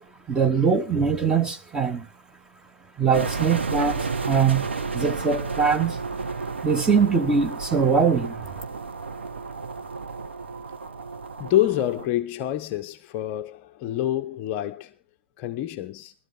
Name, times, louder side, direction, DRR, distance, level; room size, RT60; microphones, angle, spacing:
voice 1, 0.3-2.1 3.0-4.7 4.9-6.0 6.6-8.4, right 6 dB, 10° right, 1.1 m, -22 dB
sound 1, 3.1-12.1, right 4 dB, 70° right, 1.7 m, -32 dB
voice 2, 11.4-14.9 15.4-16.1, left 13 dB, 30° left, 0.6 m, -27 dB
18.0 x 12.5 x 3.4 m
figure-of-eight pair, 120°, 6 cm